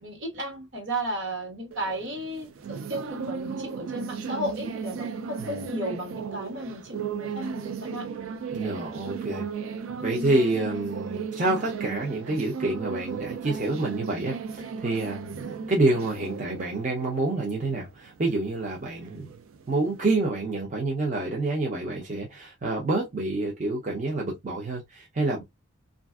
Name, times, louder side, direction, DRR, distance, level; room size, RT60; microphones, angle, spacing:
voice 1, 0.0-8.1 10.0-10.3, right 1 dB, 60° right, 1.3 m, -34 dB
sound 1, 1.7-20.1, right 6 dB, 90° right, 0.4 m, -36 dB
voice 2, 8.5-9.7 10.0-19.3 19.7-25.4, right 2 dB, 40° right, 0.6 m, -28 dB
3.2 x 2.5 x 2.3 m
head